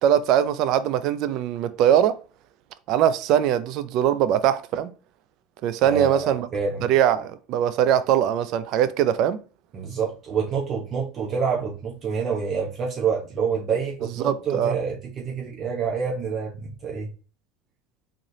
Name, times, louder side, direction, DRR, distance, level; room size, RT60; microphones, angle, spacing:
voice 1, 0.0-2.2 2.9-4.9 5.6-6.5 6.8-9.4 14.2-14.8, right 10 dB, 60° right, 0.4 m, -21 dB
voice 2, 5.8-6.9 9.7-17.1, right 6 dB, 40° right, 1.0 m, -27 dB
3.8 x 3.2 x 2.7 m
supercardioid pair, 105°, 0 cm